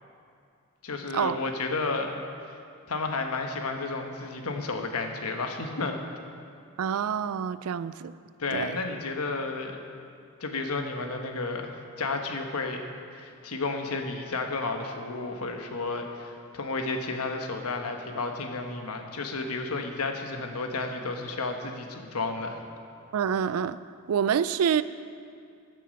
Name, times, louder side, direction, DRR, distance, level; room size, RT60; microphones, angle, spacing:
voice 1, 0.8-2.1 2.9-5.9 8.4-9.8 10.4-11.7 12.0-12.8 13.1-22.6, left 3 dB, 90° left, 4 dB, 1.1 m, -32 dB
voice 2, 6.8-8.1 8.5-8.8 23.1-23.8 24.1-24.8, right 8 dB, 85° right, 15 dB, 0.4 m, -27 dB
13.5 x 6.9 x 5.2 m, 2.4 s
head